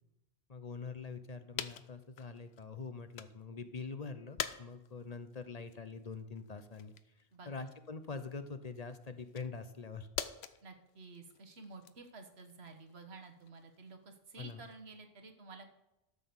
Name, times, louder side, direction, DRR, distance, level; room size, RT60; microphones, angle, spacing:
voice 1, 0.5-10.1 14.4-14.6, left 4 dB, 45° left, 10 dB, 0.8 m, -44 dB
sound 1, 1.5-3.5 3.9-14.9, left 9 dB, 85° left, 0.9 m, -47 dB
voice 2, 7.3-7.7 10.6-15.7, right 3 dB, 85° right, 6 dB, 1.6 m, -52 dB
13.0 x 6.1 x 7.0 m, 0.95 s
omnidirectional pair, 1.0 m